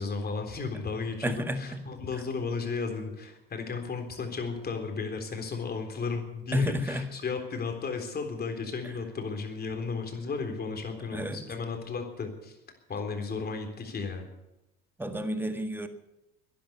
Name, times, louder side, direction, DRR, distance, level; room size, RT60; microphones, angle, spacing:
voice 1, 0.0-12.6 12.9-14.3, left 4 dB, 30° left, 4 dB, 3.8 m, -34 dB
voice 2, 1.2-1.8 6.5-7.1 11.1-11.4 15.0-15.9, equal, 5° right, 8 dB, 1.7 m, -31 dB
12.0 x 10.5 x 9.5 m, 0.93 s
supercardioid pair, 90°, 30 cm